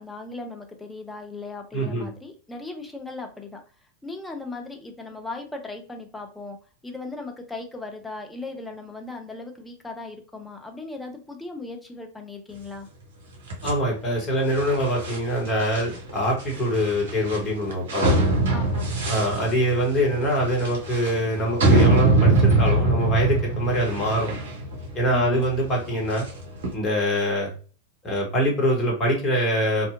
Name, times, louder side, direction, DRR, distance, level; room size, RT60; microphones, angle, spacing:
voice 1, 0.0-3.6 4.0-6.6 6.8-12.9 18.5-18.9 25.1-25.5, left 2 dB, 10° left, 3 dB, 0.5 m, -37 dB
voice 2, 1.7-2.1 13.6-18.2 19.1-24.3 24.9-26.3 26.7-27.5 28.0-29.9, equal, 25° left, -2 dB, 1.1 m, -24 dB
sound 1, 13.5-26.7, right 2 dB, 60° right, 0.7 m, -24 dB
2.7 x 2.1 x 2.4 m, 0.38 s
figure-of-eight pair, 90°, 0 cm